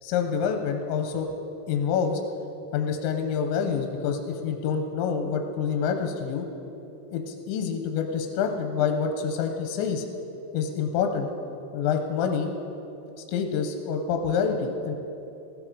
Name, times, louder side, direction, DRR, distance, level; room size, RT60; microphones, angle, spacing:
voice 1, 0.0-1.3 1.7-2.2 2.7-6.5 7.1-10.0 10.5-11.3 11.7-12.5 13.3-15.0, left 6 dB, 90° left, 4 dB, 3.0 m, -27 dB
15.5 x 12.5 x 4.8 m, 2.9 s
omnidirectional pair, 5.3 m